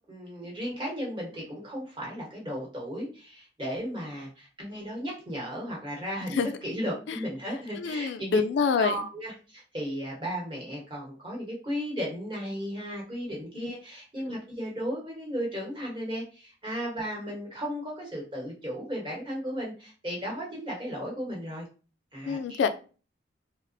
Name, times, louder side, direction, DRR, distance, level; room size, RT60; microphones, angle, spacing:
voice 1, 0.1-8.4 8.8-21.7 22.1-22.6, equal, 25° right, 0.9 m, -35 dB
voice 2, 7.8-9.1 13.5-13.7 14.3-14.4 22.3-22.7, left 5 dB, 75° left, 0.3 m, -27 dB
2.8 x 2.0 x 2.5 m
head